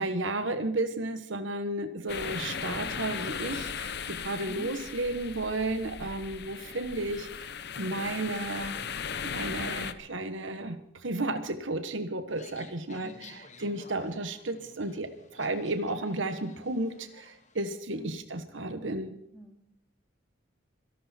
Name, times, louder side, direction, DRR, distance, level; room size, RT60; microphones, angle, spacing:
voice 1, 0.0-8.8 9.2-19.2, right 2 dB, 70° right, 9 dB, 1.3 m, -33 dB
sound 1, 2.1-9.9, left 6 dB, 55° left, 0.9 m, -37 dB
sound 2, 12.3-17.6, left 4 dB, 35° left, 1.5 m, -53 dB
voice 2, 19.3-19.6, right 1 dB, ahead, 1 dB, 3.1 m, -45 dB
26.0 x 12.0 x 4.4 m, 0.74 s
head